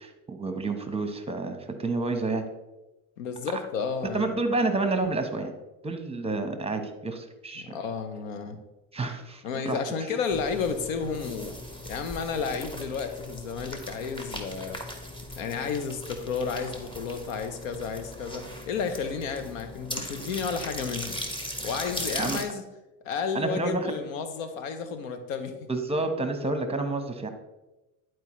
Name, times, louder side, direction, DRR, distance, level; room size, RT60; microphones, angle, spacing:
voice 1, 0.0-2.4 4.1-5.5 5.8-7.7 8.9-9.8 22.2-22.4 23.3-23.9 25.7-27.3, right 3 dB, 15° right, 7 dB, 1.1 m, -29 dB
voice 2, 3.2-4.3 7.6-8.6 9.4-11.6 11.8-14.8 15.4-21.2 21.6-22.6 23.0-25.5, left 5 dB, 90° left, 8 dB, 0.9 m, -32 dB
sound 1, 10.3-22.4, left 1 dB, 15° left, 1.3 m, -38 dB
11.0 x 4.5 x 3.1 m, 1.0 s
supercardioid pair, 80°, 39 cm